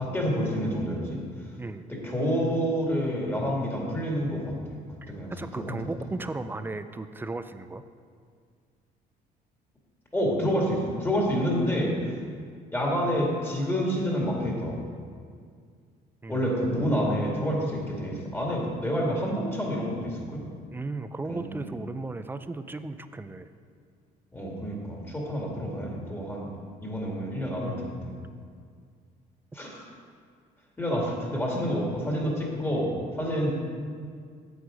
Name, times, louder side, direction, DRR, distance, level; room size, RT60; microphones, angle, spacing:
voice 1, 0.0-1.5 1.9-4.6 5.1-5.8 10.1-12.2 12.7-14.8 16.3-20.4 21.3-21.7 24.3-26.5 26.8-28.1 29.5-29.8 30.8-33.6, equal, 15° left, -2 dB, 2.1 m, -28 dB
voice 2, 5.0-7.8 16.2-16.7 20.7-23.5, right 3 dB, 10° right, 10 dB, 0.4 m, -36 dB
8.3 x 8.0 x 5.0 m, 2.1 s
cardioid pair, 110°, 17 cm